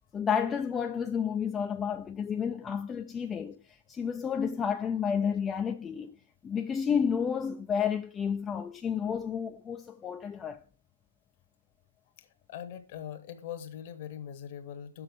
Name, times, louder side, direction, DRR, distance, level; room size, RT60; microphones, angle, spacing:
voice 1, 0.1-3.6 3.9-6.1 6.4-10.6, left 7 dB, 15° left, 0.3 m, -31 dB
voice 2, 12.5-15.0, left 9 dB, 45° left, 1.0 m, -41 dB
6.3 x 6.1 x 4.9 m
figure-of-eight pair, 120°, 0 cm